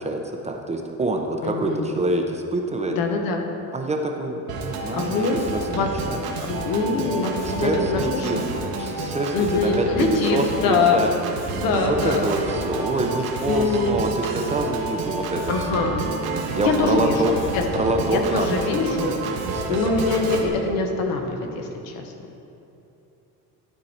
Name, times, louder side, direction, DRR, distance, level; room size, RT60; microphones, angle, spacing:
voice 1, 0.0-3.0 3.7-6.2 7.4-8.4 8.8-11.1 11.7-15.8 16.5-17.3 17.7-19.0 19.4-20.0, right 2 dB, 20° right, 3 dB, 0.5 m, -26 dB
voice 2, 1.4-1.8 3.0-3.4 4.9-5.4 5.7-5.9 6.4-8.4 9.3-11.0 11.5-12.2 13.5-14.0 15.5-16.1 16.6-19.1 19.7-22.1, left 4 dB, 75° left, 3 dB, 1.1 m, -24 dB
Organ, 4.5-20.5, right 3 dB, 85° right, 1.1 m, -29 dB
12.0 x 4.5 x 4.2 m, 2.8 s
cardioid pair, 130°, 35 cm